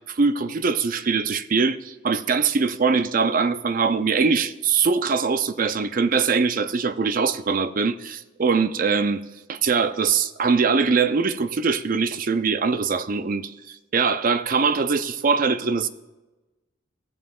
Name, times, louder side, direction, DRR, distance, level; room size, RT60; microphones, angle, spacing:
voice 1, 0.1-9.2 9.5-15.9, right 5 dB, 45° right, 12 dB, 0.5 m, -22 dB
17.0 x 7.3 x 2.4 m, 1.1 s
head